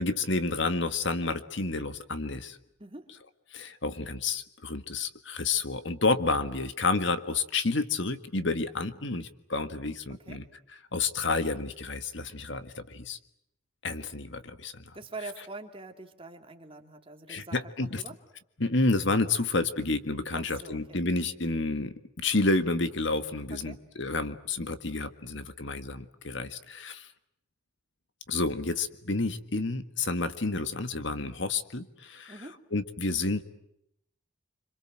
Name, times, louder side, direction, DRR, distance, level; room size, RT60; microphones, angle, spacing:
voice 1, 0.0-2.6 3.5-10.4 10.9-13.2 13.8-14.9 17.3-18.0 18.6-27.1 28.3-32.3 32.7-33.5, left 3 dB, 60° left, 10 dB, 1.8 m, -30 dB
voice 2, 10.1-10.4 14.9-18.2 20.3-21.0 23.5-23.8 32.3-32.6, right 3 dB, 25° right, 4 dB, 2.8 m, -44 dB
27.0 x 26.0 x 7.6 m, 0.77 s
head